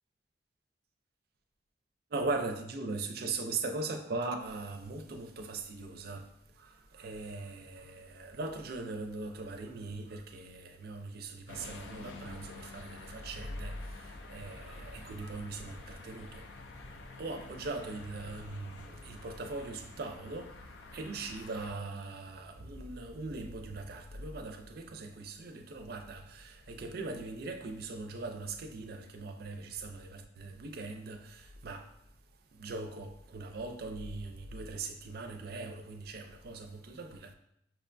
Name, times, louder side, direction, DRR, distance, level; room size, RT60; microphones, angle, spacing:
voice 1, 2.1-6.2 6.6-13.8 14.3-16.4 17.2-20.5 20.9-31.8 32.6-37.3, right 3 dB, 60° right, 0.4 m, -40 dB
sound 1, 11.5-21.7, left 2 dB, 85° left, 0.4 m, -49 dB
5.9 x 2.2 x 2.5 m
head